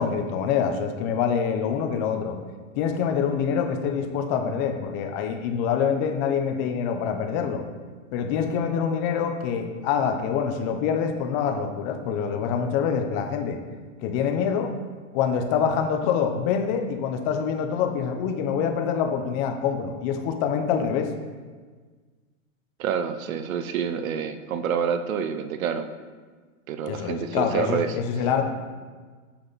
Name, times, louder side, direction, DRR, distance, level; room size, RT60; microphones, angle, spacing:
voice 1, 0.0-2.3 2.8-7.6 8.1-13.6 14.0-14.7 15.1-21.1 26.9-28.5, left 7 dB, 35° left, 5 dB, 0.8 m, -25 dB
voice 2, 22.8-25.9 26.7-28.0, right 7 dB, 85° right, 10 dB, 0.8 m, -27 dB
8.6 x 7.7 x 4.1 m, 1.5 s
supercardioid pair, 155°, 40 cm